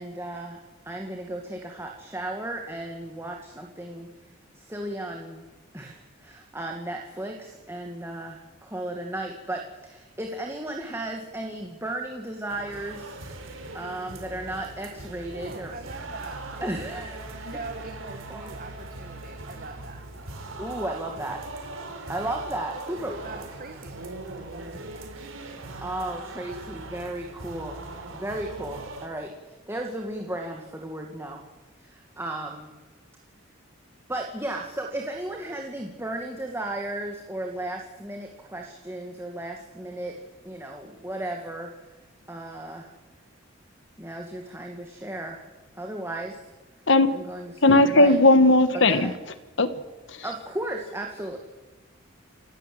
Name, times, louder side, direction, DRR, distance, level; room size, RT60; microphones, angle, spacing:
voice 1, 0.0-4.1 4.5-5.4 5.7-13.2 13.7-15.7 16.6-17.4 18.3-18.5 20.6-21.4 22.1-23.4 25.8-27.8 28.1-31.4 31.8-32.7 34.1-40.2 40.4-41.7 42.3-42.9 44.0-45.5 45.8-46.4 47.1-48.1 48.9-49.1 50.2-51.4, right 1 dB, 10° right, 1 dB, 2.1 m, -35 dB
sound 1, 12.5-29.1, right 2 dB, 90° right, 4.0 m, -40 dB
voice 2, 15.3-16.6 17.4-20.0 23.2-24.1 24.3-25.1, right 3 dB, 45° right, 5 dB, 1.8 m, -42 dB
voice 3, 47.6-49.1 49.6-49.7 50.1-50.2, left 2 dB, 65° left, 12 dB, 1.4 m, -17 dB
28.5 x 16.5 x 7.8 m, 1.2 s
head